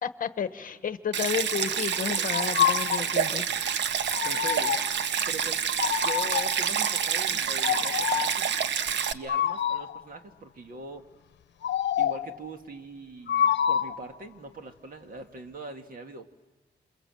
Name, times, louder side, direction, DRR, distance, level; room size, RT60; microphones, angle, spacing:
voice 1, 0.0-3.4, left 7 dB, 50° left, 11 dB, 1.1 m, -32 dB
Stream, 1.1-9.1, right 7 dB, 80° right, 0.8 m, -28 dB
voice 2, 2.2-3.5 4.2-8.6 9.1-11.1 12.0-16.3, right 2 dB, 50° right, 5 dB, 1.9 m, -42 dB
sound 1, 2.3-3.1 4.1-5.0 5.8-6.7 7.6-8.4 9.3-10.0 11.6-12.3 13.3-14.1, left 10 dB, 80° left, 0.8 m, -27 dB
29.0 x 27.0 x 7.6 m, 1.2 s
wide cardioid pair, 180°, 18 cm